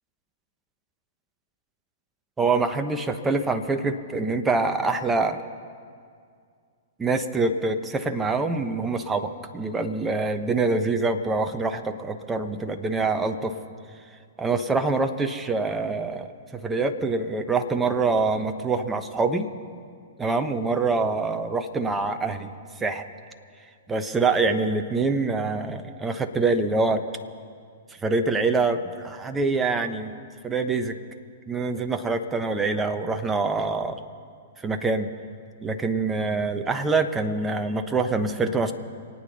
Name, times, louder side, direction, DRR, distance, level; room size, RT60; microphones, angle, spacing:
voice 1, 2.4-5.4 7.0-13.6 14.4-19.5 20.2-22.5 22.8-23.0 23.9-27.0 27.9-30.1 30.4-30.9 31.5-34.0 34.6-35.1 35.6-38.7, right 3 dB, 10° right, 8 dB, 1.0 m, -25 dB
27.5 x 9.2 x 5.7 m, 2.2 s
figure-of-eight pair, 110°, 0 cm